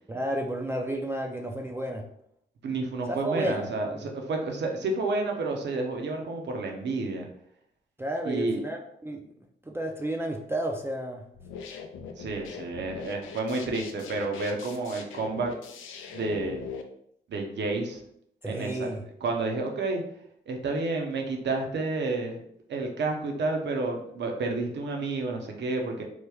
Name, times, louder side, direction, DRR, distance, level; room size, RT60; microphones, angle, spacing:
voice 1, 0.1-2.1 3.1-3.7 8.0-9.3 9.7-11.2 18.4-19.0, right 1 dB, 10° right, 0 dB, 0.4 m, -31 dB
voice 2, 2.6-7.3 8.2-8.6 12.2-15.5 16.1-16.7 17.3-18.0 18.5-18.9 19.2-20.0 20.5-22.4 22.7-26.0, right 3 dB, 65° right, 2 dB, 0.7 m, -30 dB
sound 1, 11.3-16.8, left 6 dB, 85° left, 0.4 m, -41 dB
3.2 x 2.2 x 3.4 m, 0.71 s
supercardioid pair, 55°, 20 cm